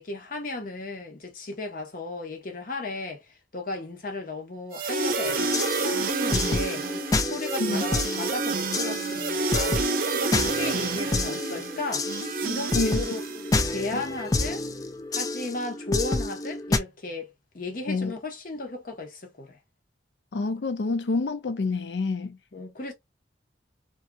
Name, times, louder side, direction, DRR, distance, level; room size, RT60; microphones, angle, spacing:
voice 1, 0.0-3.2 3.5-6.9 7.2-12.1 12.4-13.3 13.6-14.7 15.1-19.6 22.5-22.9, left 2 dB, 50° left, 0.9 m, -35 dB
sound 1, 4.7-13.8, right 4 dB, 55° right, 0.5 m, -29 dB
sound 2, 5.3-16.8, left 3 dB, 20° left, 0.3 m, -29 dB
voice 2, 12.7-13.1 13.9-14.0 17.9-18.1 20.3-22.4, left 3 dB, 80° left, 0.5 m, -27 dB
2.7 x 2.4 x 2.3 m
head